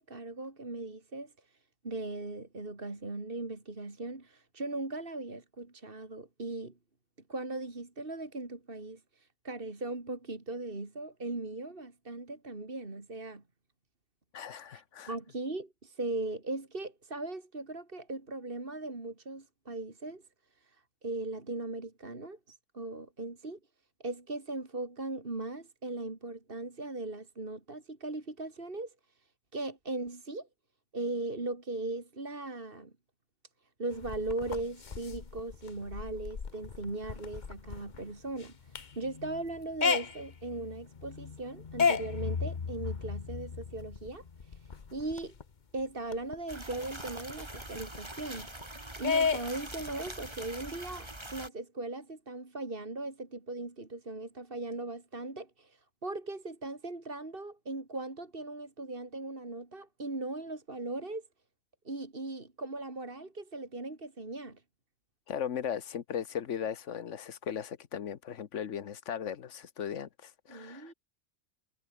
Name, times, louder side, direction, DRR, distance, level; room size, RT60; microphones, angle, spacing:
voice 1, 0.0-1.3 1.8-6.7 7.3-13.4 14.7-14.8 15.1-20.2 20.6-22.4 22.7-23.6 24.0-28.9 29.5-30.5 30.9-32.9 33.8-45.3 45.7-48.5 49.0-61.2 61.8-64.6 70.5-70.9, right 2 dB, 50° right, 3.3 m, -38 dB
voice 2, 14.3-15.1 65.3-70.9, left 8 dB, 90° left, 1.4 m, -37 dB
sound 1, 33.9-45.4 45.8-45.9 46.1-48.6 49.0-50.5, left 5 dB, 40° left, 1.1 m, -35 dB
sound 2, 46.5-51.5, right 1 dB, 20° right, 3.4 m, -44 dB
omnidirectional pair, 1.2 m